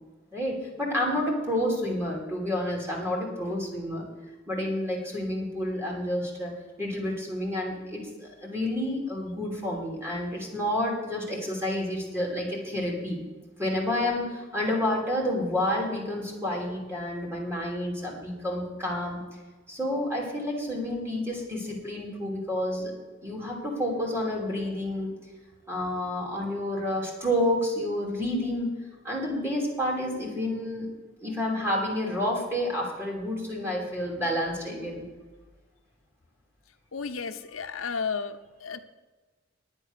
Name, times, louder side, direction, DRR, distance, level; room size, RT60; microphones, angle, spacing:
voice 1, 0.3-4.0 4.5-6.5 6.8-13.2 13.6-19.2 19.7-22.9 23.2-25.1 25.7-28.7 29.0-30.9 31.2-35.0, left 1 dB, 10° right, -2 dB, 3.0 m, -29 dB
voice 2, 36.9-38.8, left 5 dB, 90° left, 9 dB, 0.7 m, -33 dB
10.5 x 8.9 x 6.6 m, 1.3 s
head